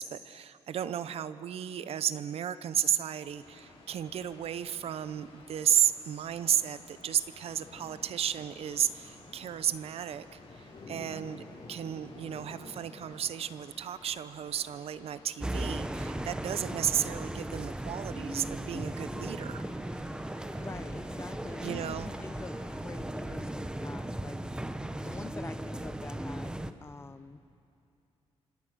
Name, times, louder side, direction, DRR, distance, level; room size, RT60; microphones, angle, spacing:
voice 1, 0.0-19.6 21.6-22.1, right 9 dB, 70° right, 14 dB, 0.8 m, -33 dB
Water, 3.2-22.8, left 3 dB, 70° left, 6.1 m, -55 dB
sound 1, 7.4-13.1, left 1 dB, 45° left, 4.9 m, -50 dB
sound 2, 15.4-26.7, right 1 dB, 10° right, 0.9 m, -37 dB
voice 2, 20.6-24.7 25.0-26.5 26.8-27.4, left 3 dB, 25° left, 12 dB, 0.9 m, -45 dB
28.0 x 26.0 x 6.4 m, 2.6 s
cardioid pair, 125°, 11 cm